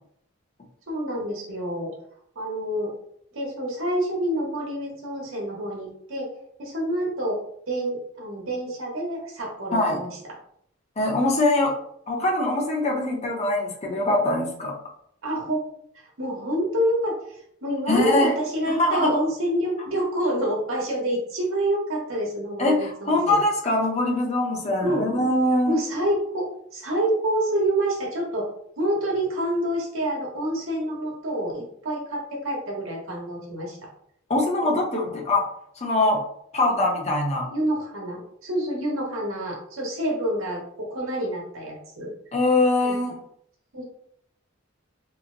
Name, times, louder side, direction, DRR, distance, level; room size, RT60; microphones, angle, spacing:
voice 1, 0.9-1.9 2.3-2.9 3.3-6.3 6.6-7.4 7.7-10.1 15.2-15.6 15.9-23.4 24.8-25.0 25.7-26.5 26.7-28.5 28.8-33.9 34.6-34.8 35.1-35.2 37.5-42.1 42.8-43.0 43.7-43.8, right 1 dB, 80° right, -1 dB, 1.1 m, -27 dB
voice 2, 11.0-11.8 12.1-14.7 17.9-18.3 18.7-19.1 22.6-25.8 34.3-35.4 35.8-36.2 36.5-37.5 42.3-43.1, left 2 dB, 35° left, -1 dB, 0.7 m, -22 dB
2.9 x 2.1 x 3.7 m, 0.68 s
head